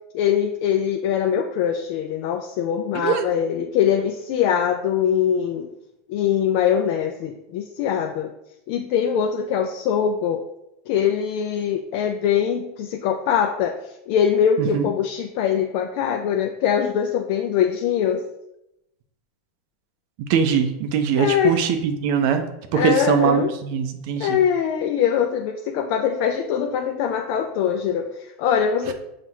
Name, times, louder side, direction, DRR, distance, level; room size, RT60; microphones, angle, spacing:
voice 1, 0.1-5.7 6.1-8.3 8.7-10.5 10.9-18.3 21.2-21.5 22.7-23.5 24.2-28.9, left 8 dB, 55° left, 4 dB, 0.3 m, -22 dB
voice 2, 2.9-3.3 14.6-14.9 20.2-22.4 22.7-24.4 28.9-29.0, right 7 dB, 60° right, 7 dB, 0.5 m, -22 dB
5.8 x 2.4 x 2.8 m, 0.85 s
supercardioid pair, 140°, 0 cm